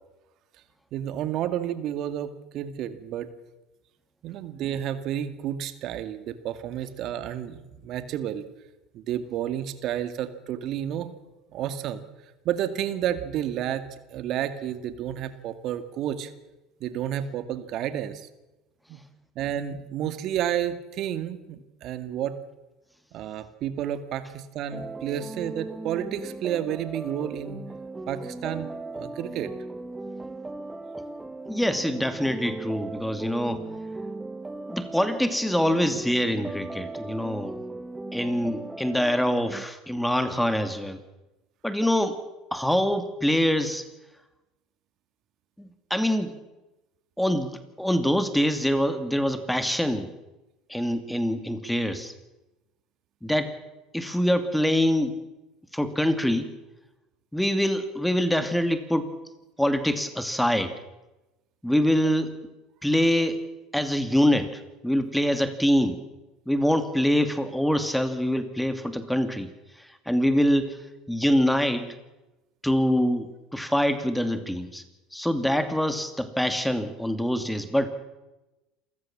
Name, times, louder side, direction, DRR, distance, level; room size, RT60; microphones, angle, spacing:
voice 1, 0.9-3.3 4.2-8.4 8.9-11.1 11.5-12.0 12.4-13.9 14.1-16.3 16.8-18.3 18.9-19.0 19.4-22.4 23.1-27.6 28.1-29.5, right 10 dB, 55° right, 11 dB, 2.0 m, -31 dB
sound 1, 24.7-39.6, right 2 dB, 15° right, 1.2 m, -38 dB
voice 2, 31.5-33.6 34.7-37.6 38.1-41.0 41.6-42.2 42.5-43.8 45.6-46.4 47.2-50.1 50.7-52.1 53.2-53.5 53.9-55.2 55.7-56.5 57.3-59.1 59.6-60.7 61.6-62.4 62.8-63.4 63.7-66.0 66.5-69.5 69.8-72.0 72.6-74.8 75.1-77.9, equal, 5° left, 10 dB, 2.4 m, -25 dB
28.0 x 15.5 x 7.4 m, 1.0 s
hypercardioid pair, 75°, 0 cm